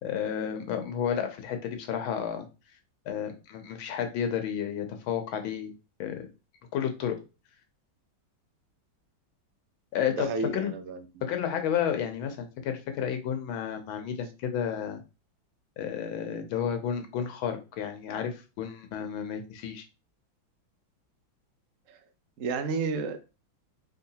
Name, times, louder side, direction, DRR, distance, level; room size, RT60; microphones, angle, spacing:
voice 1, 0.0-2.5 3.1-5.7 6.0-6.3 6.7-7.2 9.9-10.7 11.2-15.0 15.8-19.8, left 8 dB, 85° left, 1.6 m, -31 dB
voice 2, 10.2-11.1 21.9-22.0 22.4-23.2, right 4 dB, 65° right, 0.8 m, -31 dB
4.2 x 3.7 x 2.8 m
omnidirectional pair, 2.2 m